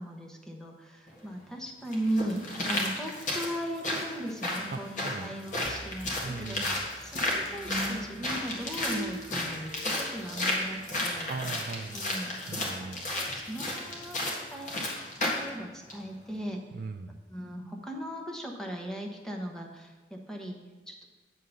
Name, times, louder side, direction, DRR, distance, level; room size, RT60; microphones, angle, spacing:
voice 1, 0.0-6.6 7.0-11.3 11.9-12.4 13.1-14.8 15.2-16.6 17.3-21.0, right 1 dB, 5° left, 1 dB, 1.0 m, -37 dB
sound 1, 1.1-1.2 1.9-15.5 15.9-16.0, left 1 dB, 45° left, 1.7 m, -33 dB
voice 2, 4.7-5.7 6.2-6.8 11.3-12.0 12.5-13.1 16.7-17.2, right 4 dB, 55° right, 7 dB, 0.4 m, -39 dB
sound 2, 5.6-14.8, right 1 dB, 75° right, 1.0 m, -45 dB
9.1 x 3.7 x 6.8 m, 1.3 s
head